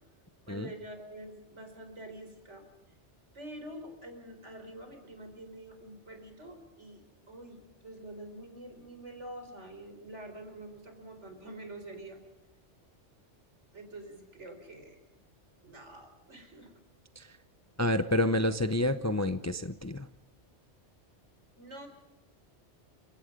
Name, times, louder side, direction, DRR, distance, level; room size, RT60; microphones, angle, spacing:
voice 1, 0.5-2.6 3.3-12.2 13.7-15.0 15.6-16.7 21.6-21.9, right 1 dB, 75° right, 6 dB, 4.6 m, -46 dB
voice 2, 17.8-20.1, left 1 dB, 15° left, 11 dB, 0.6 m, -29 dB
30.0 x 17.5 x 5.2 m, 0.97 s
omnidirectional pair, 1.2 m